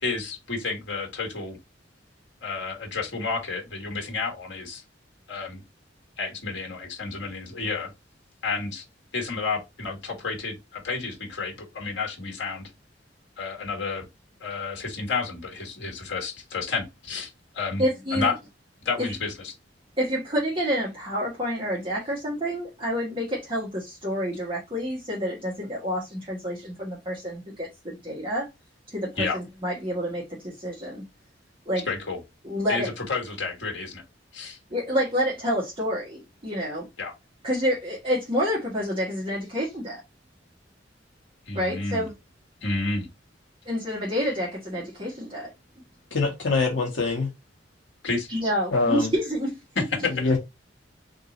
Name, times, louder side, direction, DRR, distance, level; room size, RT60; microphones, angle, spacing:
voice 1, 0.0-1.6 2.4-4.8 5.3-5.6 6.2-7.9 8.4-8.8 9.1-12.7 13.4-14.0 14.4-17.8 18.1-18.3 18.8-19.5 29.2-29.4 31.9-32.2 32.7-34.0 34.3-34.6 37.0-37.1 41.5-42.0 42.6-43.1 48.0-48.3 49.7-50.2, left 4 dB, 70° left, 1.5 m, -30 dB
voice 2, 17.8-18.3 19.0-19.1 20.0-28.5 28.9-31.0 31.6-31.9 32.4-32.9 34.7-36.9 37.4-40.0 41.5-42.1 43.6-45.5 48.3-49.6, equal, 30° right, 1.4 m, -28 dB
voice 3, 46.1-47.3 48.7-49.1 50.2-50.4, left 3 dB, 85° left, 1.1 m, -24 dB
3.7 x 2.7 x 3.9 m
head